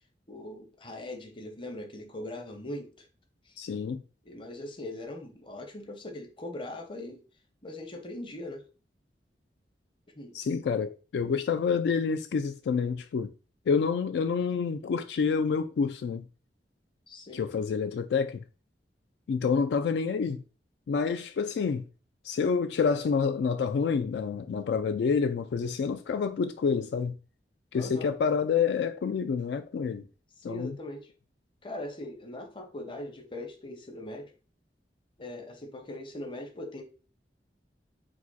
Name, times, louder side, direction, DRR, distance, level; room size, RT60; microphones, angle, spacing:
voice 1, 0.3-3.1 3.5-3.6 4.2-7.2 7.6-8.7 10.2-10.4 17.1-17.4 27.7-28.1 30.5-31.1 31.6-34.3 35.2-36.8, left 1 dB, 30° left, 0.7 m, -40 dB
voice 2, 3.6-4.0 10.3-13.3 13.7-16.2 17.3-18.4 19.3-20.4 20.9-21.8 22.2-27.1 27.7-30.0 30.4-30.7, left 5 dB, 75° left, 0.3 m, -28 dB
4.8 x 2.1 x 4.0 m
head